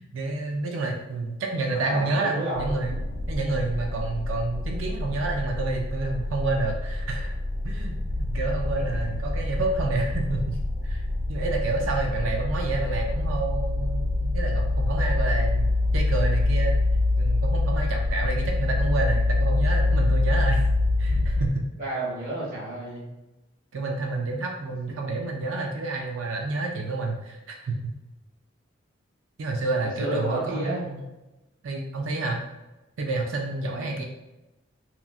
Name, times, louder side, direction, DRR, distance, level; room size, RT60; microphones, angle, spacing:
voice 1, 0.0-3.0 3.3-7.4 7.6-8.0 8.3-11.0 11.3-16.8 17.2-20.6 21.0-21.7 23.7-27.9 29.4-31.0 31.6-32.4 33.0-34.0, right 3 dB, 85° right, 1 dB, 0.4 m, -29 dB
voice 2, 1.7-2.8 8.7-8.8 21.8-23.0 29.8-30.8 33.7-33.9, right 1 dB, 45° right, -8 dB, 1.4 m, -32 dB
sound 1, 2.6-21.5, left 2 dB, 80° left, 0.4 m, -25 dB
2.9 x 2.3 x 2.4 m, 1.0 s
head